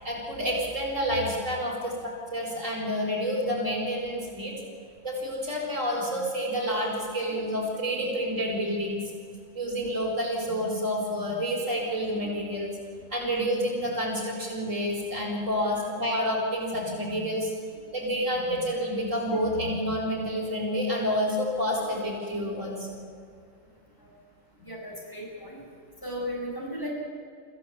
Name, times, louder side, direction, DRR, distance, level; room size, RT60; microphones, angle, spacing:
voice 1, 0.0-4.5 5.0-9.0 9.5-12.7 13.1-17.5 17.9-23.0, equal, 70° right, -2 dB, 6.0 m, -29 dB
voice 2, 24.6-25.6 26.0-26.9, equal, 15° left, -4 dB, 6.8 m, -36 dB
26.0 x 15.5 x 8.6 m, 2.2 s
omnidirectional pair, 1.4 m